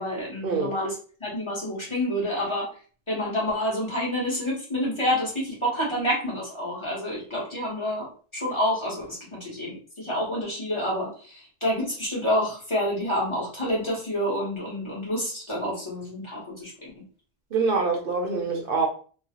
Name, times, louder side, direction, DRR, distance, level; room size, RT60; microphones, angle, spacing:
voice 1, 0.0-2.7 3.1-8.1 8.3-16.9, equal, 30° left, 0.9 m, -28 dB
voice 2, 17.5-18.9, right 4 dB, 65° right, 0.7 m, -25 dB
2.4 x 2.0 x 2.7 m
omnidirectional pair, 1.1 m